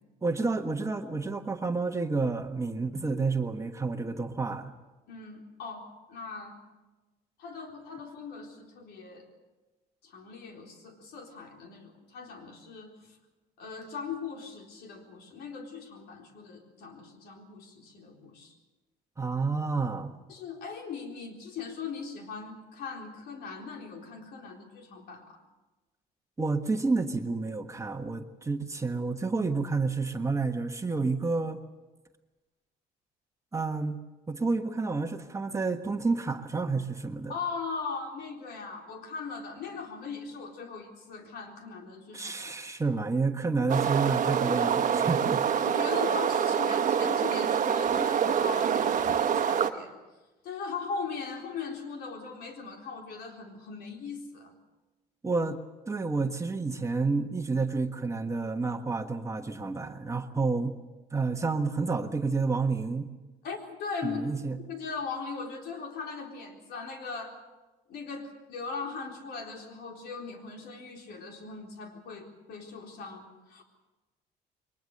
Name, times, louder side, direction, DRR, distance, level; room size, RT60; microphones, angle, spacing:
voice 1, 0.2-4.7 19.2-20.1 26.4-31.6 33.5-34.0 34.3-37.3 42.1-45.4 55.2-55.6 55.9-60.7 61.1-63.1 64.0-64.6, right 4 dB, 15° right, 5 dB, 1.4 m, -29 dB
voice 2, 5.1-6.6 7.4-9.3 10.0-13.2 13.6-18.5 20.3-25.4 37.3-42.6 45.6-50.0 50.4-54.5 63.4-64.2 64.7-67.4 67.9-73.6, left 5 dB, 75° left, 2 dB, 4.0 m, -39 dB
sound 1, 43.7-49.7, right 8 dB, 50° right, 1.2 m, -26 dB
22.5 x 19.5 x 6.7 m, 1.2 s
cardioid pair, 110°, 17 cm